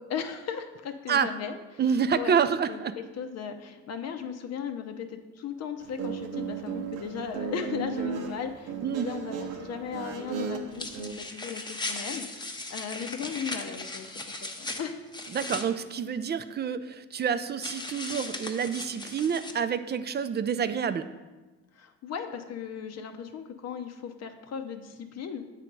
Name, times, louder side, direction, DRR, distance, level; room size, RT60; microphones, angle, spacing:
voice 1, 0.0-1.5 2.1-2.4 2.7-2.8 3.2-14.1 14.4-15.0 21.7-25.4, left 7 dB, 60° left, 7 dB, 0.6 m, -37 dB
voice 2, 1.8-2.9 8.8-9.1 15.3-21.1, right 7 dB, 35° right, 11 dB, 0.4 m, -28 dB
Guitar, 5.8-11.1, right 5 dB, 85° right, 0.7 m, -35 dB
sound 1, 10.7-15.6 17.6-19.5, left 2 dB, 15° left, 0.7 m, -37 dB
8.2 x 3.3 x 5.3 m, 1.2 s
cardioid pair, 90°, 30 cm